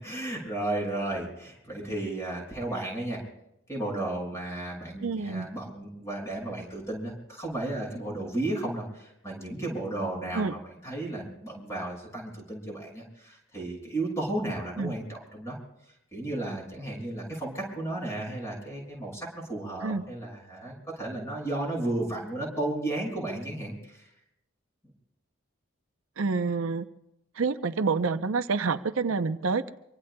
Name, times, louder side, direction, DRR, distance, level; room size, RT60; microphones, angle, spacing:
voice 1, 0.0-3.2 3.7-15.6 16.1-24.1, right 1 dB, 15° left, -1 dB, 6.4 m, -34 dB
voice 2, 5.0-5.5 10.3-10.5 14.8-14.9 19.8-20.0 26.2-26.9 27.4-29.7, right 4 dB, 80° right, 9 dB, 0.7 m, -28 dB
25.5 x 24.5 x 2.3 m, 0.82 s
head